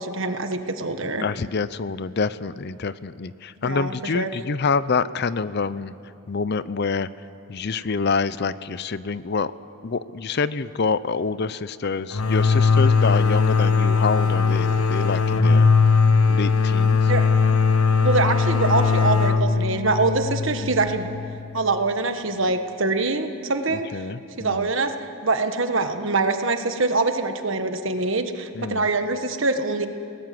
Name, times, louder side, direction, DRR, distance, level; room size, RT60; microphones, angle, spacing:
voice 1, 0.0-1.2 3.6-4.3 17.1-17.3 18.0-21.1 21.5-24.1 24.4-29.9, right 3 dB, 60° right, 7 dB, 1.4 m, -24 dB
voice 2, 1.2-5.9 6.3-7.1 7.5-9.5 9.8-15.7 16.3-17.1 20.6-20.7 23.7-24.7 28.5-28.9, left 4 dB, 50° left, 16 dB, 0.5 m, -26 dB
sound 1, 12.1-21.6, left 5 dB, 85° left, 1.1 m, -19 dB
28.0 x 19.0 x 7.7 m, 2.7 s
head